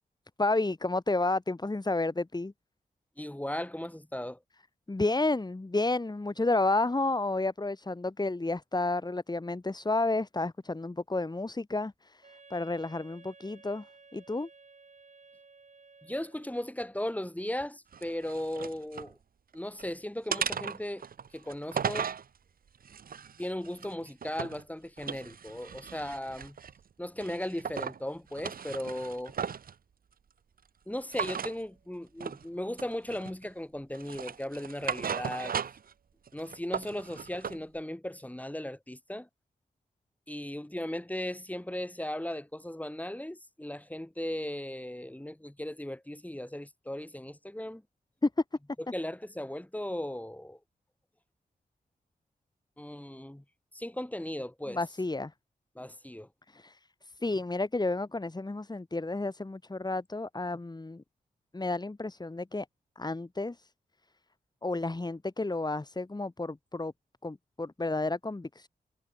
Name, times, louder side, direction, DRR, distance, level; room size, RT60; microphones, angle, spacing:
voice 1, 0.4-2.5 4.9-13.9 14.1-14.5 48.2-48.3 54.7-55.3 56.5-61.0 61.5-62.7 63.0-63.7 64.6-66.9 67.2-68.7, left 2 dB, 25° left, 2.7 m, -31 dB
voice 2, 3.2-4.4 16.0-19.2 19.5-21.0 21.3-22.1 23.4-26.6 27.0-29.3 30.9-35.5 36.3-39.3 40.3-47.8 48.9-50.6 52.8-53.4 53.7-54.8 55.8-56.3, left 1 dB, 10° left, 7.5 m, -37 dB
Wind instrument woodwind instrument, 12.2-16.7, right 4 dB, 50° right, 7.1 m, -56 dB
sound 1, 17.9-19.1 19.5-19.9 20.3-22.2 22.8-24.6 25.0-26.8 27.2-28.0 28.3-29.7 31.1-31.6 32.2-32.4 32.8-33.5 33.9-35.9 36.3-37.6, right 7 dB, 65° right, 1.0 m, -36 dB
cardioid pair, 50°, 16 cm